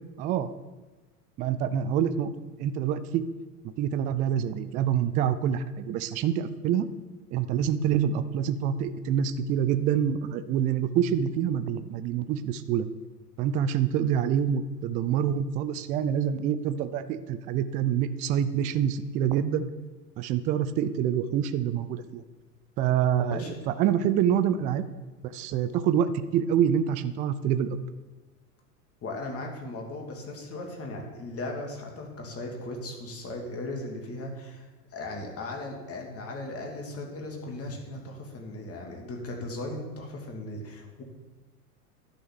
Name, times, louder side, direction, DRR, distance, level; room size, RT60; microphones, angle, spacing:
voice 1, 0.2-0.5 1.4-3.2 3.8-6.9 7.3-12.9 13.4-19.6 20.2-22.2 22.8-24.8 25.3-27.8, right 9 dB, 20° right, 12 dB, 0.3 m, -26 dB
voice 2, 29.0-41.0, left 2 dB, 30° left, 1 dB, 2.8 m, -37 dB
11.0 x 6.3 x 7.7 m, 1.2 s
figure-of-eight pair, 85°, 47 cm